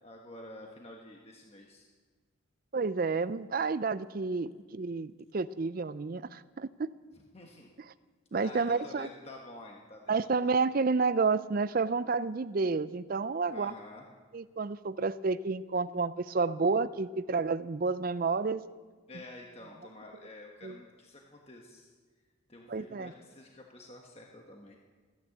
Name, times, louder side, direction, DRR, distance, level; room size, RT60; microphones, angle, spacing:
voice 1, 0.0-1.9 7.1-7.7 8.4-10.6 13.5-14.1 19.1-21.9 22.5-24.8, left 1 dB, 30° left, 0 dB, 1.3 m, -49 dB
voice 2, 2.7-6.9 8.3-9.1 10.1-13.7 14.3-18.6 20.6-20.7 22.7-23.1, right 4 dB, 45° right, 15 dB, 0.4 m, -30 dB
15.0 x 10.5 x 8.2 m, 1.4 s
head